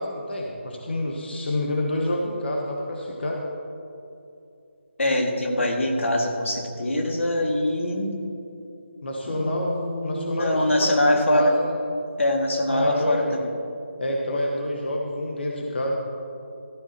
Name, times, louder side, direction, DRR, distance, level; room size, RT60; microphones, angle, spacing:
voice 1, 0.0-3.4 9.0-9.7 10.0-11.8 12.7-13.4 14.0-15.9, left 1 dB, 60° left, -1 dB, 1.5 m, -28 dB
voice 2, 5.0-8.1 9.3-11.5 12.2-13.5, left 1 dB, 85° left, 1 dB, 2.2 m, -23 dB
14.5 x 13.0 x 3.0 m, 2.7 s
figure-of-eight pair, 165°, 7 cm